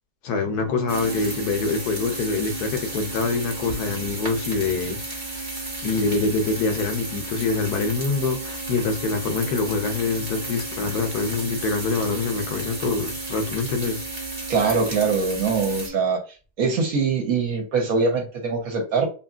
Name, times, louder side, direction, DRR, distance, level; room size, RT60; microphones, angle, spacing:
voice 1, 0.2-5.5 5.8-14.0, left 4 dB, 75° left, 1.0 m, -25 dB
sound 1, 0.6-16.0, right 3 dB, 40° left, 0.6 m, -38 dB
sound 2, 0.9-15.9, right 1 dB, 30° right, 0.8 m, -34 dB
voice 2, 14.5-16.2 16.6-19.1, right 4 dB, 65° right, 1.1 m, -22 dB
2.8 x 2.8 x 2.3 m
omnidirectional pair, 1.8 m